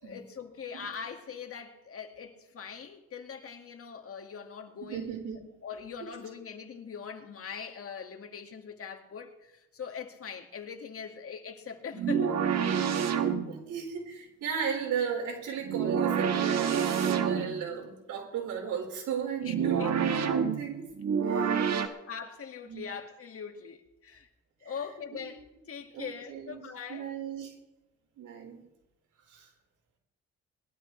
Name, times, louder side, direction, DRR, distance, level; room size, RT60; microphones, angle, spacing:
voice 1, 0.0-5.1 5.6-12.4 19.4-19.9 21.7-24.3 24.6-27.1, left 6 dB, 50° left, 2.1 m, -42 dB
voice 2, 4.8-5.4 6.0-6.1 13.0-20.9 21.2-21.6 22.6-22.9 24.6-24.8 25.1-25.2 25.9-27.5 28.2-28.6 29.3-29.5, right 7 dB, 80° right, 4.8 m, -36 dB
sound 1, 11.9-13.7 15.6-17.7 19.4-21.9, right 7 dB, 60° right, 1.5 m, -28 dB
21.5 x 12.5 x 3.3 m
cardioid pair, 90°, 30 cm